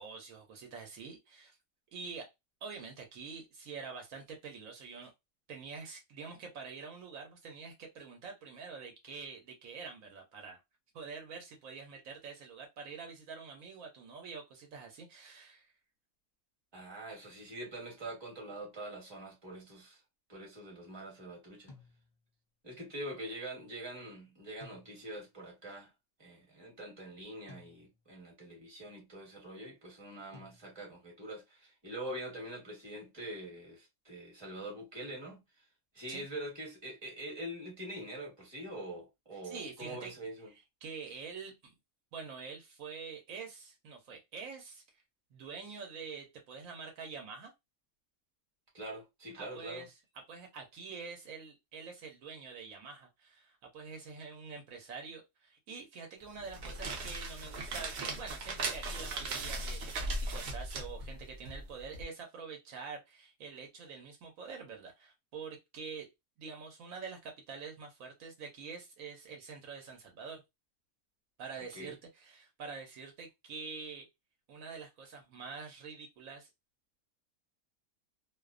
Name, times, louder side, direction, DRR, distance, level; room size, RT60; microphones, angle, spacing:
voice 1, 0.0-1.6 1.9-2.3 2.6-5.1 5.5-10.6 10.9-15.7 36.1-36.3 39.4-40.1 40.5-41.7 42.1-44.8 45.3-47.5 49.4-49.9 50.3-66.1 66.4-70.4 71.4-74.1 74.5-76.5, right 5 dB, 75° right, 1.0 m, -46 dB
voice 2, 16.7-20.0 20.3-21.7 22.6-25.9 26.2-35.6 35.9-40.5 48.7-49.8 71.7-71.9, right 1 dB, 20° right, 1.0 m, -44 dB
sound 1, 21.7-22.5 24.6-25.4 27.5-28.2 30.3-31.1, left 3 dB, 65° left, 0.4 m, -58 dB
sound 2, 56.4-62.0, right 2 dB, 60° right, 0.7 m, -38 dB
2.5 x 2.1 x 2.4 m
omnidirectional pair, 1.5 m